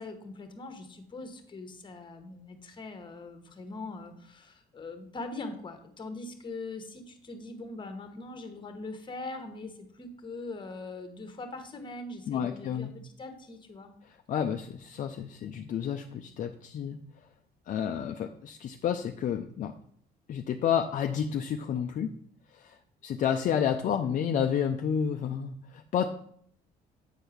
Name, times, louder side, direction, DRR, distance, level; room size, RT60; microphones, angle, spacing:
voice 1, 0.0-13.9, left 3 dB, 30° left, 7 dB, 1.3 m, -42 dB
voice 2, 12.3-12.9 14.0-17.0 17.7-19.7 20.3-22.1 22.5-26.1, left 8 dB, 50° left, 5 dB, 0.6 m, -30 dB
8.2 x 4.5 x 5.0 m, 0.63 s
cardioid pair, 110°, 17 cm